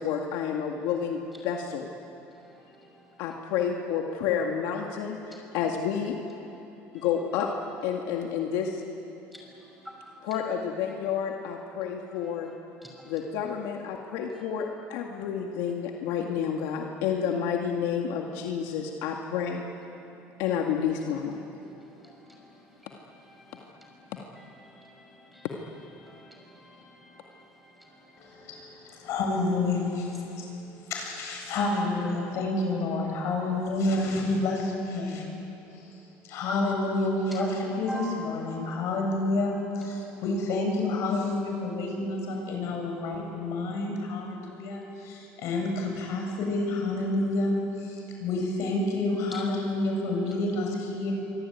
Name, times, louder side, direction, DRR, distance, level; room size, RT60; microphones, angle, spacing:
voice 1, 0.0-1.9 3.2-6.2 6.9-7.5 7.8-8.8 10.2-12.5 13.0-19.6 20.4-21.4, left 7 dB, 80° left, 1 dB, 2.0 m, -30 dB
voice 2, 26.1-27.2 37.4-37.5 37.9-38.1 49.3-49.4, right 1 dB, ahead, 0 dB, 6.2 m, -41 dB
voice 3, 28.2-35.3 35.8-35.9 36.2-51.1, left 2 dB, 60° left, 1 dB, 7.6 m, -29 dB
25.0 x 24.0 x 9.4 m, 2.9 s
cardioid pair, 125°, 6 cm